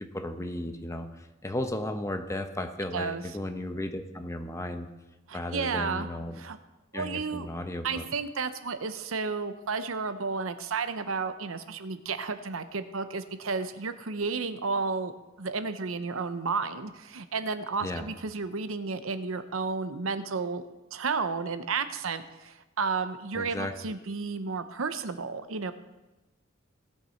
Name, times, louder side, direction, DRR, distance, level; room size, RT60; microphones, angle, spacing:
voice 1, 0.0-4.9 5.3-6.4 6.9-8.1 17.8-18.1 23.3-24.0, left 1 dB, 15° left, 7 dB, 0.8 m, -35 dB
voice 2, 2.9-3.2 5.3-6.1 6.4-6.6 6.9-7.5 7.8-15.1 15.4-20.6 20.9-25.7, right 4 dB, 75° right, 10 dB, 0.8 m, -32 dB
18.0 x 6.7 x 4.4 m, 1.0 s
head